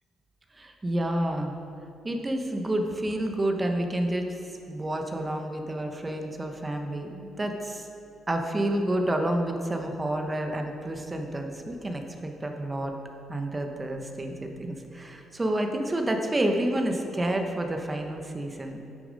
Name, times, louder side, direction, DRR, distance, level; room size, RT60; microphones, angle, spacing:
voice 1, 0.5-1.6 2.0-4.4 4.7-7.9 8.3-12.9 13.3-18.8, right 1 dB, 20° right, 4 dB, 1.0 m, -29 dB
9.2 x 6.8 x 5.2 m, 2.8 s
cardioid pair, 90°, 0 cm